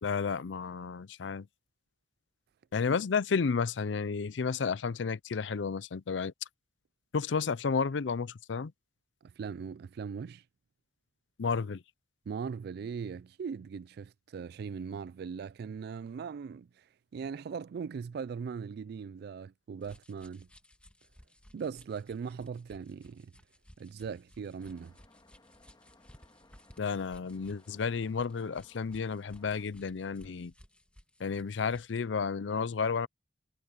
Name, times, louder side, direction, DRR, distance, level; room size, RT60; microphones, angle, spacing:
voice 1, 0.0-1.5 2.7-6.3 7.1-8.7 11.4-11.8 26.8-30.5 31.2-33.1, left 5 dB, 85° left, 0.5 m, -32 dB
voice 2, 9.2-10.4 12.3-16.7 17.1-20.5 21.5-23.3 23.8-25.0, right 6 dB, 60° right, 0.3 m, -39 dB
sound 1, 19.8-32.0, equal, 5° left, 1.6 m, -59 dB
sound 2, 24.6-29.7, left 2 dB, 25° left, 1.8 m, -63 dB
head